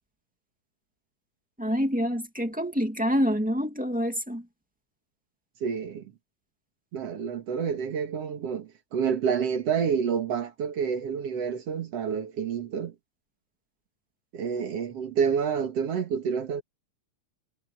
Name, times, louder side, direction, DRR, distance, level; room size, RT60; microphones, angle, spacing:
voice 1, 1.6-4.5, equal, 5° right, 1.9 m, -27 dB
voice 2, 5.6-6.1 6.9-12.9 14.3-16.6, right 7 dB, 60° right, 2.5 m, -28 dB
omnidirectional pair, 3.3 m